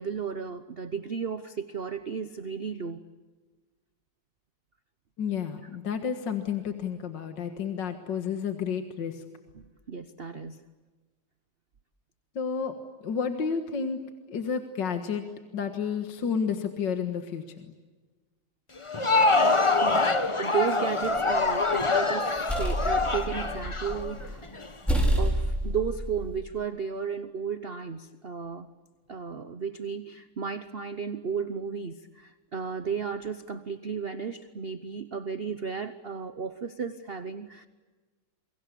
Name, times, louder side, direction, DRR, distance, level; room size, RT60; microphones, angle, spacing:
voice 1, 0.0-3.0 9.5-10.6 19.8-20.1 20.4-24.5 25.2-28.7 29.1-37.7, right 6 dB, 55° right, 11 dB, 0.6 m, -34 dB
voice 2, 5.2-9.2 12.4-12.7 13.0-14.0 14.3-15.2 15.5-17.7, left 6 dB, 55° left, 6 dB, 2.1 m, -31 dB
Crowd, 18.8-24.7, left 3 dB, 20° left, 0.9 m, -25 dB
sound 1, 21.1-21.6 22.1-24.2 24.5-24.6 24.9-26.4, right 1 dB, ahead, 5.8 m, -28 dB
28.5 x 23.5 x 8.5 m, 1.3 s
omnidirectional pair, 2.4 m